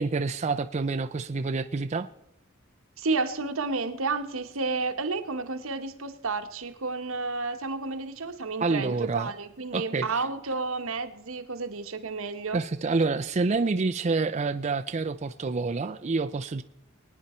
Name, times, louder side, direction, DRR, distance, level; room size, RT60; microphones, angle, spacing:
voice 1, 0.0-2.1 8.6-9.3 9.7-10.1 12.5-16.6, right 3 dB, 35° right, 0.5 m, -27 dB
voice 2, 3.0-12.6, right 3 dB, 80° right, 1.1 m, -31 dB
24.0 x 9.4 x 4.3 m
head